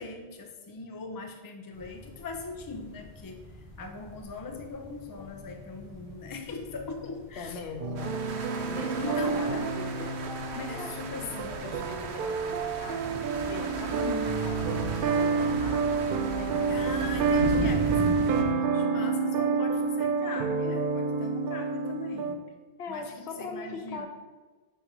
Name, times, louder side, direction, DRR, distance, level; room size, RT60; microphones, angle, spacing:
voice 1, 0.0-3.4 3.8-7.6 9.0-9.4 10.7-11.8 16.7-22.4 22.9-24.1, left 4 dB, 25° left, 4 dB, 0.5 m, -40 dB
sound 1, 1.7-18.1, left 2 dB, 75° left, 2.0 m, -49 dB
voice 2, 7.4-8.2 8.5-10.2 10.6-16.9 22.8-24.1, left 4 dB, 90° left, 5 dB, 0.9 m, -41 dB
sound 2, 7.8-22.3, right 5 dB, 60° right, 0.7 m, -29 dB
sound 3, 8.0-18.4, right 3 dB, 85° right, 0.9 m, -36 dB
5.0 x 4.6 x 4.5 m, 1.3 s
omnidirectional pair, 1.1 m